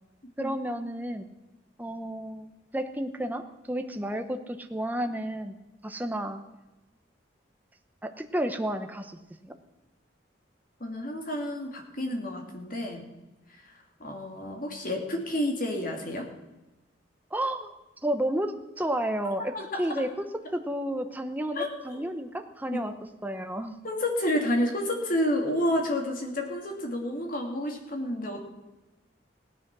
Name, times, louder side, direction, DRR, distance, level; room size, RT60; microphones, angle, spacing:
voice 1, 0.4-1.3 1.8-5.6 5.8-6.4 8.0-9.5 17.3-17.8 18.0-20.3 20.5-22.9 23.2-23.8, right 1 dB, 10° right, 6 dB, 0.9 m, -31 dB
voice 2, 10.8-13.1 13.5-13.7 14.0-16.3 19.5-19.8 21.5-22.1 22.7-22.8 23.8-28.4, left 1 dB, 50° left, 3 dB, 2.5 m, -30 dB
16.5 x 10.0 x 6.1 m, 1.0 s
head